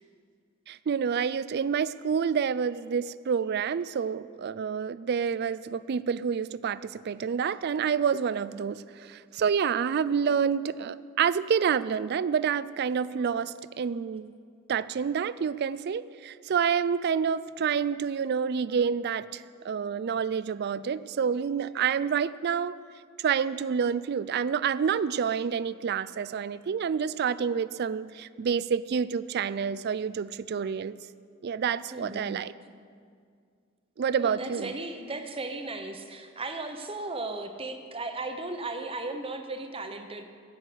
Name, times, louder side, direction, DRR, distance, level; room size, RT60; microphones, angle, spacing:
voice 1, 0.7-14.3 14.7-22.8 23.2-31.0 31.4-32.5 34.0-34.7, right 7 dB, 50° right, 17 dB, 0.4 m, -28 dB
voice 2, 31.9-32.4 34.2-40.3, right 2 dB, 25° right, 6 dB, 0.9 m, -36 dB
16.0 x 6.5 x 7.9 m, 2.2 s
head